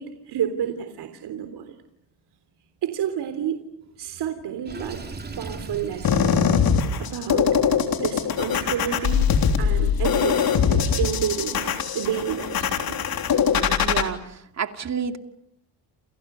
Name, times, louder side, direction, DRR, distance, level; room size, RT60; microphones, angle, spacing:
voice 1, 0.0-1.8 2.8-3.6 4.0-5.0 5.4-6.3 7.0-7.6 8.0-9.3 9.6-13.0, right 9 dB, 60° right, 7 dB, 3.4 m, -30 dB
Water / Sink (filling or washing), 4.6-6.4, right 3 dB, 20° right, 3.1 m, -37 dB
sound 1, 6.0-14.0, left 7 dB, 55° left, 3.5 m, -22 dB
voice 2, 13.8-15.2, right 6 dB, 35° right, 7 dB, 2.5 m, -29 dB
30.0 x 28.5 x 6.8 m, 0.76 s
cardioid pair, 130°, 44 cm